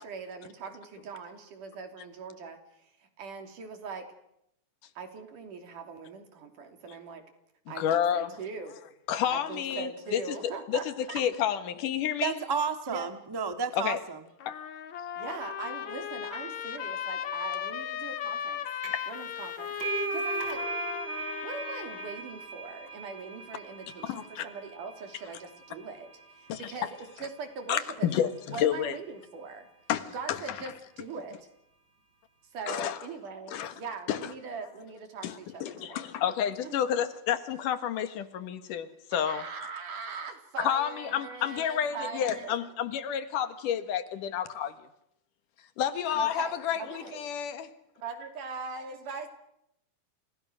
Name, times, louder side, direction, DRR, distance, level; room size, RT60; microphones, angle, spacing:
voice 1, 0.0-4.1 5.0-7.2 7.7-8.8 9.3-11.2 12.9-13.1 15.2-18.6 19.1-20.6 21.4-29.7 30.1-31.5 32.5-36.2 36.6-36.8 39.1-42.5 46.2-47.2 48.0-49.3, right 5 dB, 80° right, 4.6 m, -41 dB
voice 2, 7.8-8.3 9.1-10.4 10.7-10.8 11.1-12.4 13.7-14.0 14.5-14.6 18.9-19.0 24.0-24.5 26.5-26.7 27.7-29.0 29.9-30.4 32.7-33.0 33.5-33.7 34.1-34.2 35.2-39.4 40.6-44.9 45.8-47.7, left 9 dB, 85° left, 3.0 m, -30 dB
voice 3, 12.2-14.2, right 6 dB, 15° right, 0.7 m, -31 dB
Trumpet, 14.4-22.3, left 9 dB, 65° left, 2.7 m, -37 dB
sound 1, 18.8-19.1 19.4-26.7, right 4 dB, 35° right, 4.4 m, -38 dB
29.5 x 29.0 x 6.3 m
omnidirectional pair, 3.6 m